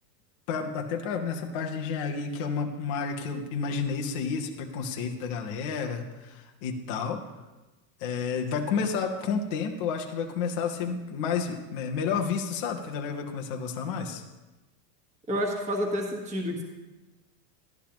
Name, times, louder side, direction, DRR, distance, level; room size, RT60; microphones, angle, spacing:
voice 1, 0.5-7.3 8.0-14.2, left 5 dB, 25° left, 3 dB, 0.3 m, -31 dB
voice 2, 15.3-16.6, equal, 15° right, 2 dB, 1.2 m, -29 dB
13.0 x 11.5 x 2.9 m, 1.1 s
supercardioid pair, 160°, 48 cm